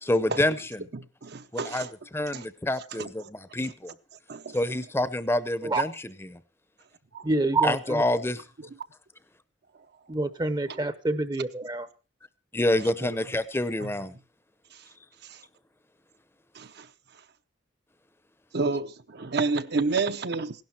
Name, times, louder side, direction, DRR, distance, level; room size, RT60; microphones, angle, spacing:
voice 1, 0.0-0.9 1.5-3.9 4.5-6.4 7.6-8.4 12.5-14.1, left 1 dB, 15° left, 0.7 m, -27 dB
voice 2, 0.9-1.9 2.3-2.4 3.0-3.1 4.3-4.6 7.1-7.2 16.6-16.9 18.5-20.5, right 4 dB, 60° right, 0.8 m, -29 dB
voice 3, 7.2-8.0 10.1-11.9, right 2 dB, 25° right, 0.7 m, -27 dB
16.5 x 11.5 x 4.4 m
head